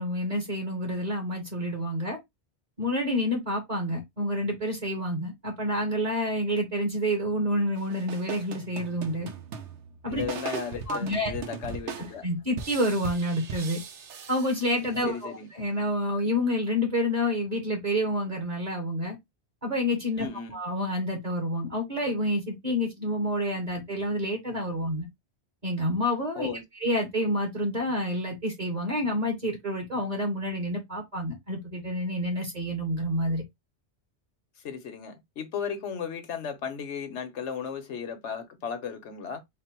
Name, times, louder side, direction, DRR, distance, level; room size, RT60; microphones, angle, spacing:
voice 1, 0.0-2.2 2.8-9.3 10.0-10.2 10.5-10.6 10.9-11.3 12.2-13.8 14.3-19.2 19.6-20.3 20.5-25.1 25.6-26.5 26.8-33.4, equal, 40° right, 1.3 m, -28 dB
sound 1, 7.8-15.2, right 5 dB, 85° right, 1.1 m, -40 dB
voice 2, 10.1-12.3 15.0-15.5 20.2-20.6 26.4-26.6 34.6-39.4, left 7 dB, 85° left, 1.2 m, -35 dB
4.0 x 2.1 x 4.4 m
omnidirectional pair, 1.2 m